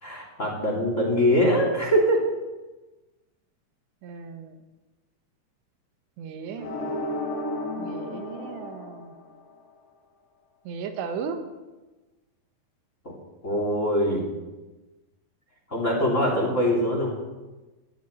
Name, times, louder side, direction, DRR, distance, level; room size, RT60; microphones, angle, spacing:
voice 1, 0.0-2.2 13.0-13.1 13.4-14.2 15.7-17.1, equal, 20° left, -1 dB, 2.4 m, -23 dB
voice 2, 4.0-4.6 6.2-6.7 7.6-9.1 10.6-11.4, right 6 dB, 75° right, 7 dB, 3.3 m, -36 dB
sound 1, 6.6-9.6, left 1 dB, 55° left, 5.2 m, -32 dB
15.0 x 11.5 x 6.4 m, 1.2 s
omnidirectional pair, 5.2 m